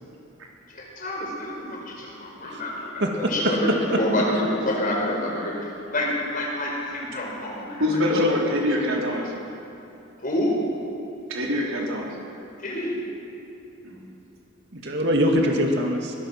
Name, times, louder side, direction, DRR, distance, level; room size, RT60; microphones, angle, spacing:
voice 1, 0.7-8.0 10.2-10.5 12.6-13.0, left 1 dB, 40° left, -2 dB, 5.4 m, -28 dB
voice 2, 3.0-3.7 8.1-8.3 14.7-16.1, equal, 55° right, 1 dB, 2.3 m, -23 dB
voice 3, 7.8-9.3 11.3-12.1 13.8-14.0 15.4-15.5, left 1 dB, 75° right, -3 dB, 5.0 m, -25 dB
23.5 x 22.0 x 6.0 m, 2.8 s
head